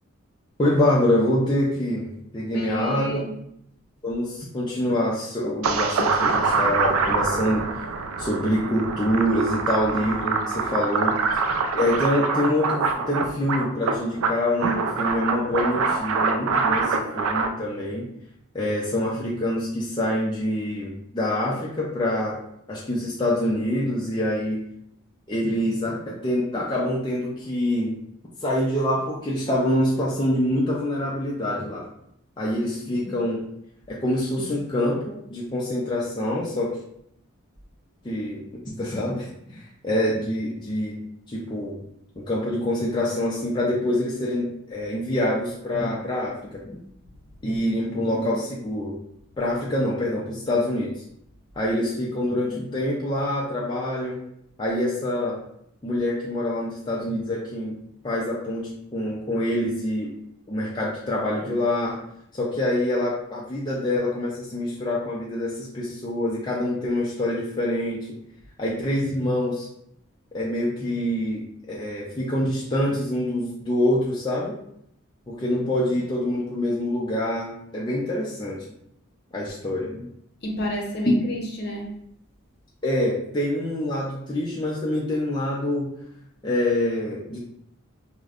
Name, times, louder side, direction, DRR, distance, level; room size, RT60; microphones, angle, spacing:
voice 1, 0.6-2.1 2.3-3.2 4.0-7.7 8.2-11.2 11.7-18.1 18.5-22.4 22.7-24.6 25.3-28.0 28.4-31.9 32.4-33.5 33.9-36.8 38.0-41.0 41.3-41.8 42.2-46.8 47.4-49.0 49.4-50.9 51.6-54.2 54.6-55.4 55.8-60.1 60.5-62.0 62.3-68.1 68.6-69.7 70.3-74.6 75.3-78.6 79.3-80.1 82.8-85.9 86.4-87.4, left 1 dB, 20° left, -5 dB, 0.4 m, -25 dB
voice 2, 2.5-3.3 80.4-82.0, equal, 50° left, -1 dB, 0.7 m, -30 dB
sound 1, 5.6-17.5, right 4 dB, 85° right, 0.4 m, -25 dB
5.0 x 2.1 x 2.4 m, 0.74 s
head